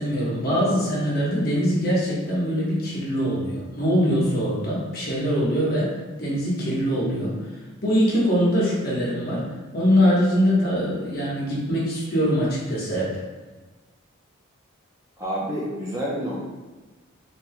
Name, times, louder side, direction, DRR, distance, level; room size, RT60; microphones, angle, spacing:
voice 1, 0.0-5.9 6.2-7.5 7.8-9.4 9.7-13.2, equal, 45° left, -6 dB, 1.1 m, -23 dB
voice 2, 15.2-16.5, equal, 15° right, -7 dB, 0.6 m, -28 dB
5.2 x 2.7 x 2.2 m, 1.2 s
head